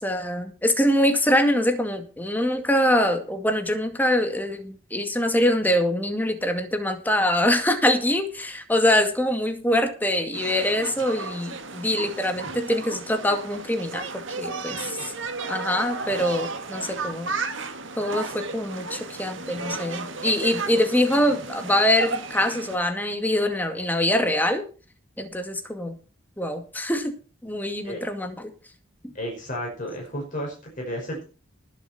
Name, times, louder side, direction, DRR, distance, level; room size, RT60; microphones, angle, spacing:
voice 1, 0.0-15.1 15.5-17.3 18.0-24.6 25.2-25.9 26.4-27.1 27.4-28.5 29.0-29.1, left 1 dB, 10° left, 6 dB, 2.2 m, -24 dB
sound 1, 10.3-22.8, right 3 dB, 70° right, 1.9 m, -34 dB
voice 2, 29.1-31.2, equal, 45° left, 0 dB, 5.3 m, -32 dB
20.5 x 7.4 x 4.3 m, 0.35 s
head